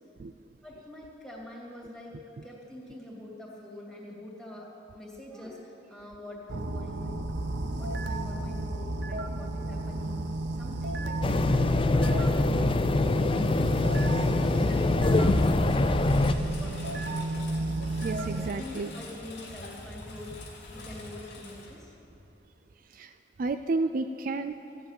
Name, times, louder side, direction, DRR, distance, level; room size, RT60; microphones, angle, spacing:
voice 1, 0.6-7.2 7.8-10.3 10.5-11.2 11.9-13.0 13.2-17.7 18.3-20.4 20.7-21.9, left 1 dB, ahead, -4 dB, 2.6 m, -45 dB
sound 1, 6.5-18.6, right 2 dB, 75° right, 0.8 m, -33 dB
sound 2, 11.2-16.3, left 2 dB, 30° left, 0.5 m, -24 dB
Engine, 14.0-22.4, left 1 dB, 80° left, 2.5 m, -44 dB
voice 2, 18.0-18.9 22.9-23.1 23.4-24.6, right 3 dB, 50° right, 8 dB, 0.4 m, -31 dB
15.0 x 7.5 x 9.0 m, 2.7 s
head